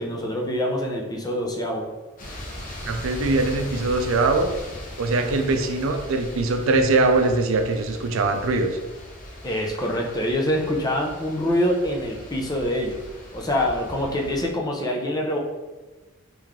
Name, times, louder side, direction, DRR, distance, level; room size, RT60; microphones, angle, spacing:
voice 1, 0.0-1.9 9.4-13.0 13.3-15.4, left 1 dB, 20° left, 0 dB, 0.5 m, -25 dB
sound 1, 2.2-14.5, left 1 dB, 45° left, 0.9 m, -39 dB
voice 2, 2.9-4.5 5.0-8.8, right 3 dB, 85° right, 6 dB, 0.5 m, -22 dB
3.3 x 3.1 x 3.6 m, 1.2 s
head